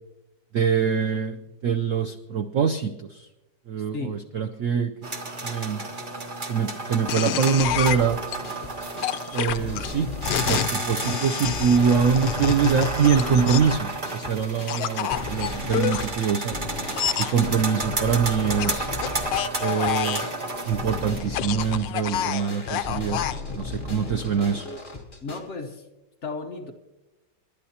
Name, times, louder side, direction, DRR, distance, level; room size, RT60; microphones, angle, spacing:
voice 1, 0.5-1.4 1.6-3.3 3.7-5.1 5.4-5.8 6.5-8.2 9.3-10.1 10.5-16.6 17.2-18.9 19.6-20.3 20.7-23.2 23.6-24.7, right 7 dB, 80° right, 7 dB, 0.7 m, -24 dB
sound 1, 5.0-21.2, right 3 dB, 30° right, 1.3 m, -32 dB
sound 2, 7.1-8.4 9.0-13.8 14.7-16.1 16.9-17.3 18.6-20.3 21.2-23.4, left 11 dB, 75° left, 1.3 m, -28 dB
sound 3, 7.6-25.4, left 3 dB, 25° left, 1.8 m, -36 dB
voice 2, 25.2-25.8 26.2-26.7, left 3 dB, 45° left, 3 dB, 1.1 m, -34 dB
28.5 x 12.0 x 2.8 m, 1.1 s
omnidirectional pair, 2.1 m